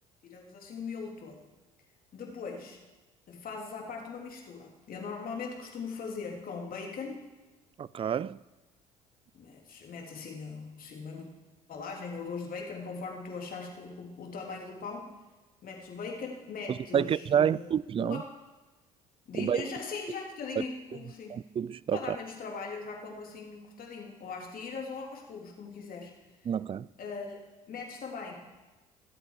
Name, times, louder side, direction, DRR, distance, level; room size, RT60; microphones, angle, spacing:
voice 1, 0.2-1.5 2.1-2.8 3.3-7.2 9.3-11.2 11.7-15.1 15.6-17.7 18.0-18.3 19.3-21.4 21.9-26.1 27.0-27.4 27.7-28.3, left 4 dB, 50° left, 3.1 m, -40 dB
voice 2, 7.8-8.4 16.7-18.2 19.4-19.7 20.6-20.7 21.3-22.2 26.5-26.9, right 8 dB, 30° right, 0.4 m, -29 dB
22.5 x 8.0 x 4.9 m
hypercardioid pair, 60°, 18 cm